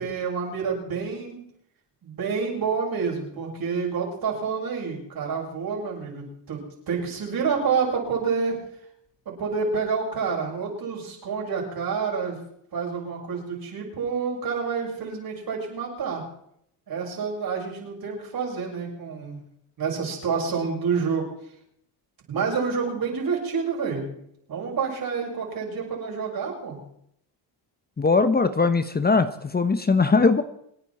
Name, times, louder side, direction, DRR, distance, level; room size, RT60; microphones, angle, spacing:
voice 1, 0.0-1.4 2.0-8.6 9.3-12.4 12.7-16.2 16.9-19.4 19.8-21.3 22.3-24.0 24.5-26.8, right 5 dB, 55° right, -1 dB, 7.1 m, -28 dB
voice 2, 28.0-30.4, left 4 dB, 20° left, 10 dB, 1.1 m, -20 dB
27.5 x 9.9 x 4.4 m, 0.71 s
cardioid pair, 90°, 42 cm